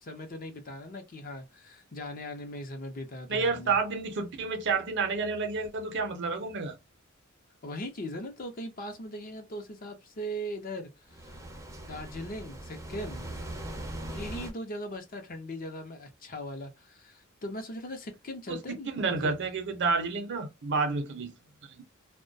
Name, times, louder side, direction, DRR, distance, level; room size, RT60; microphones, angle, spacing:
voice 1, 0.0-3.8 7.6-11.4 11.8-13.3 14.1-19.4, equal, 40° left, 0.6 m, -39 dB
voice 2, 3.3-6.7 18.5-21.3 21.6-21.8, right 4 dB, 55° right, 0.6 m, -30 dB
sound 1, 11.1-14.5, right 1 dB, 15° right, 0.5 m, -40 dB
2.2 x 2.1 x 2.6 m
head